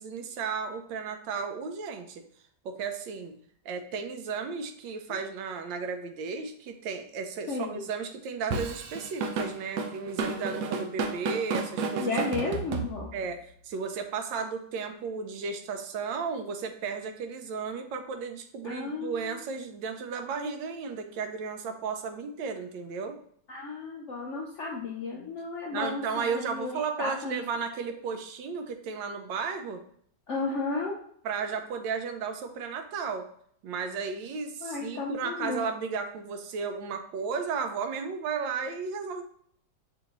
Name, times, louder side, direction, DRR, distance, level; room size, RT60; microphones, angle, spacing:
voice 1, 0.0-2.2 2.6-3.4 3.6-12.1 13.1-13.4 13.6-23.2 25.7-29.8 31.2-33.3 33.6-39.2, right 5 dB, 90° right, 7 dB, 1.3 m, -34 dB
voice 2, 7.5-7.9 12.0-13.1 18.6-19.4 23.5-27.4 30.3-30.9 34.6-35.6, left 3 dB, 70° left, -2 dB, 0.6 m, -33 dB
Drum kit / Drum, 8.5-13.3, right 4 dB, 70° right, 1.1 m, -32 dB
6.3 x 2.6 x 2.9 m, 0.63 s
omnidirectional pair, 2.0 m